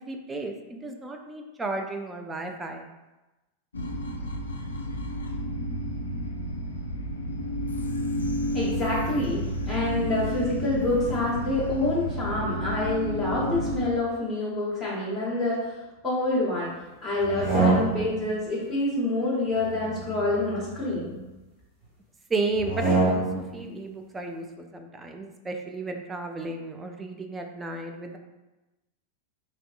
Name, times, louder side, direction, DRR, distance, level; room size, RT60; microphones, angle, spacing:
voice 1, 0.0-2.9 22.3-28.2, right 3 dB, 15° right, 3 dB, 0.3 m, -33 dB
sound 1, 3.7-13.9, equal, 75° left, 0.3 m, -31 dB
voice 2, 8.5-9.4 9.7-15.8 16.0-16.7 17.0-21.1, left 2 dB, 5° left, -10 dB, 1.0 m, -27 dB
sound 2, 17.2-18.3 19.6-21.2 22.5-23.5, right 3 dB, 30° right, 1.4 m, -27 dB
3.2 x 2.6 x 2.4 m, 1.1 s
figure-of-eight pair, 90°, 0 cm